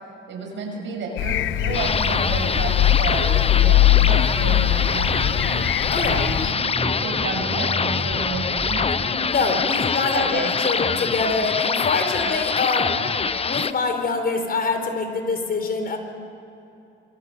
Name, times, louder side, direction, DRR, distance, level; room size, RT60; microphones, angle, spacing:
voice 1, 0.3-5.5 6.0-6.4 6.7-9.2 10.1-10.5 10.8-11.0, right 3 dB, 70° right, 1 dB, 7.0 m, -31 dB
sound 1, 1.2-6.5, left 16 dB, 75° left, 0.5 m, -21 dB
sound 2, 1.4-8.8, equal, 5° left, 6.5 m, -32 dB
sound 3, 1.7-13.7, left 5 dB, 30° left, 0.8 m, -25 dB
voice 2, 9.3-12.9 13.4-16.0, left 4 dB, 50° left, 5 dB, 4.4 m, -24 dB
26.0 x 24.0 x 7.0 m, 2.8 s
cardioid pair, 90°, 20 cm